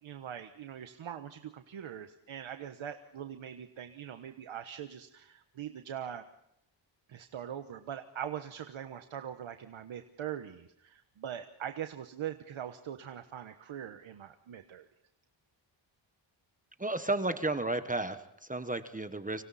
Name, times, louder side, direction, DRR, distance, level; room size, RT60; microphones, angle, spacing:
voice 1, 0.0-6.2 7.1-14.9, right 9 dB, 80° right, 7 dB, 1.3 m, -42 dB
voice 2, 16.8-19.4, right 2 dB, 15° right, 9 dB, 1.2 m, -33 dB
30.0 x 26.0 x 4.3 m, 0.76 s
wide cardioid pair, 100°, 47 cm